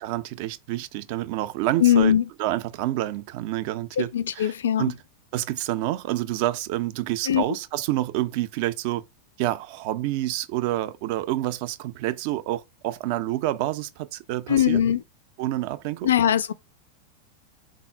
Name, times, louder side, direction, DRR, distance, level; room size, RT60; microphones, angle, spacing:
voice 1, 0.0-2.1 2.4-5.0 5.3-9.0 9.4-14.8 15.4-16.1, right 15 dB, 45° right, 0.3 m, -28 dB
voice 2, 1.8-2.2 4.0-4.8 7.3-7.4 14.5-15.0 16.0-16.5, left 10 dB, 65° left, 0.3 m, -20 dB
3.6 x 2.0 x 4.3 m
figure-of-eight pair, 90°, 0 cm